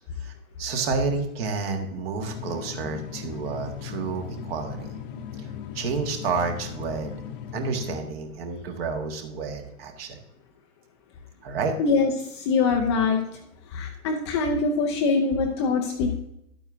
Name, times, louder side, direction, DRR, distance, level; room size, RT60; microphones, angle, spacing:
voice 1, 0.6-4.9 5.4-5.5 5.7-7.1 7.5-10.2 11.4-11.7, right 4 dB, 45° right, 4 dB, 1.7 m, -30 dB
sound 1, 2.2-8.0, left 9 dB, 35° left, 0.9 m, -38 dB
voice 2, 11.8-13.2 13.7-16.2, left 4 dB, 20° left, 2 dB, 0.5 m, -23 dB
11.5 x 8.8 x 2.6 m, 0.81 s
hypercardioid pair, 125°, 42 cm